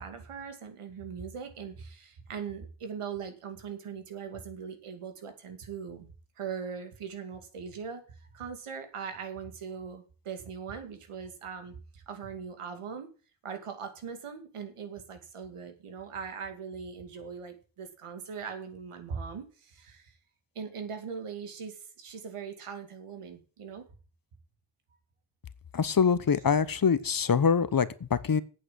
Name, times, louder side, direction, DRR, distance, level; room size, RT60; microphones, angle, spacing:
voice 1, 0.0-6.1 6.4-8.0 8.3-13.1 13.4-20.1 20.5-23.9, right 6 dB, 90° right, 7 dB, 2.5 m, -40 dB
voice 2, 25.7-28.4, left 6 dB, 45° left, 15 dB, 1.0 m, -24 dB
8.7 x 7.7 x 7.7 m, 0.37 s
cardioid pair, 70°, 49 cm